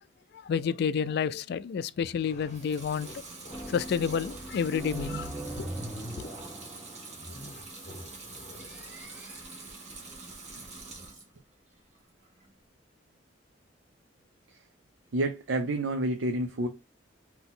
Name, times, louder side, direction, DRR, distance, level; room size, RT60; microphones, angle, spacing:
voice 1, 0.3-3.1 3.7-5.3 5.6-5.7 6.2-6.3, left 7 dB, 60° left, 0.3 m, -30 dB
sound 1, 1.9-4.6 7.2-9.5, left 1 dB, 40° left, 0.8 m, -50 dB
Water tap faucet / Sink (filling or washing) / Liquid, 2.4-11.4 11.8-12.5, right 3 dB, 40° right, 1.4 m, -46 dB
sound 2, 3.5-11.1, right 1 dB, 10° right, 1.1 m, -41 dB
voice 2, 15.1-16.7, right 1 dB, 85° right, 0.6 m, -29 dB
3.8 x 2.8 x 3.9 m
head